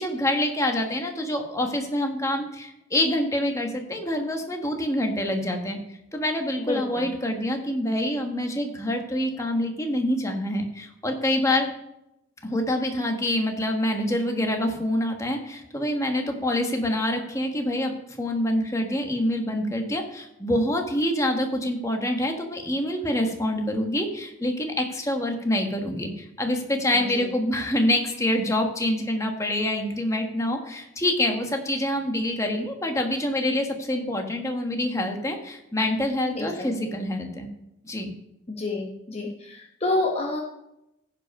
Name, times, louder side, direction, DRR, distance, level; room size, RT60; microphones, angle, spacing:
voice 1, 0.0-5.8 6.1-11.7 12.4-17.9 18.2-37.5 37.8-38.1, left 1 dB, 15° left, 3 dB, 1.2 m, -26 dB
voice 2, 6.6-7.1 26.9-27.3 36.4-36.9 38.5-40.4, left 2 dB, 30° left, 0 dB, 0.9 m, -29 dB
15.5 x 5.2 x 5.3 m, 0.86 s
head